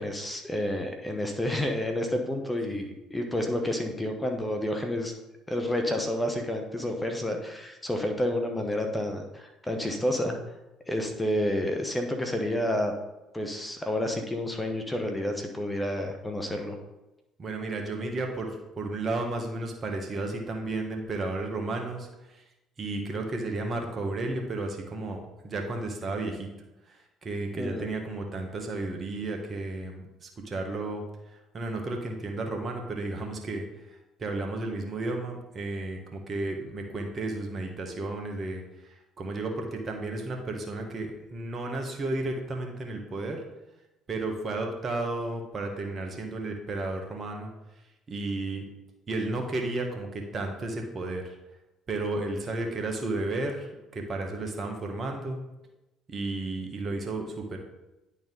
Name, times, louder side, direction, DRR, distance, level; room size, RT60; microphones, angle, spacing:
voice 1, 0.0-5.1 5.5-10.4 10.9-12.9 13.3-16.8 27.5-27.9, left 1 dB, 10° left, 4 dB, 1.2 m, -30 dB
voice 2, 17.4-18.5 18.7-22.4 22.8-26.5 26.9-27.0 27.2-31.0 31.5-33.6 34.2-43.4 44.1-47.5 48.1-48.6 49.1-51.3 51.9-55.4 56.1-57.6, right 2 dB, 40° right, 2 dB, 1.5 m, -33 dB
10.5 x 4.0 x 3.9 m, 0.96 s
hypercardioid pair, 55°, 0 cm